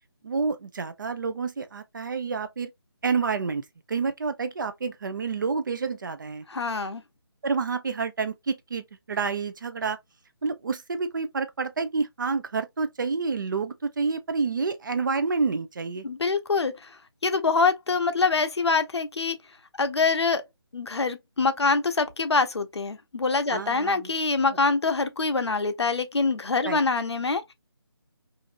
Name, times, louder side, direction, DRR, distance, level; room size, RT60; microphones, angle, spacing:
voice 1, 0.2-2.7 3.0-3.6 3.9-6.4 7.4-10.0 10.4-16.0 23.5-24.1 26.6-26.8, right 4 dB, 50° right, 0.5 m, -28 dB
voice 2, 6.5-7.0 16.0-16.9 17.2-19.4 19.8-20.4 20.7-27.5, left 4 dB, 80° left, 0.6 m, -25 dB
2.6 x 2.6 x 2.5 m
figure-of-eight pair, 160°, 14 cm